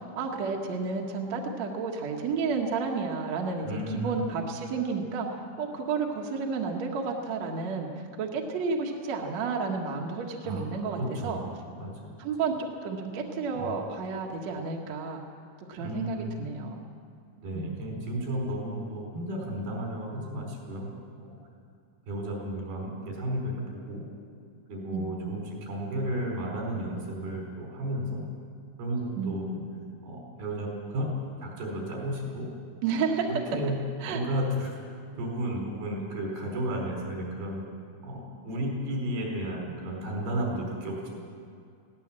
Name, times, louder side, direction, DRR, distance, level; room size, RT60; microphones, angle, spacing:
voice 1, 0.2-7.9 8.2-11.4 12.2-15.2 15.7-16.8 17.5-17.9 24.9-25.4 29.2-29.6 32.8-33.3 34.0-34.2, right 5 dB, 55° right, 0 dB, 2.4 m, -31 dB
voice 2, 3.6-4.2 10.4-10.7 11.1-11.5 11.8-12.2 13.5-13.7 15.8-16.3 17.4-20.9 22.1-24.0 24.7-28.2 28.8-29.5 30.0-31.1 31.4-32.5 33.3-33.8 34.0-34.8 35.2-37.6 38.0-41.1, right 1 dB, 80° right, -1 dB, 6.6 m, -33 dB
21.0 x 17.0 x 7.5 m, 2.4 s
omnidirectional pair, 4.4 m